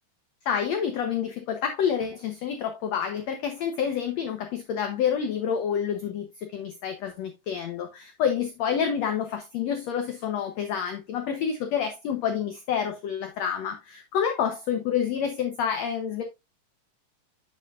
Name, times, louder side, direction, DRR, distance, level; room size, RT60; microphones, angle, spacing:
voice 1, 0.4-16.2, left 8 dB, 70° left, 1.7 m, -28 dB
9.1 x 7.6 x 2.4 m
omnidirectional pair, 4.1 m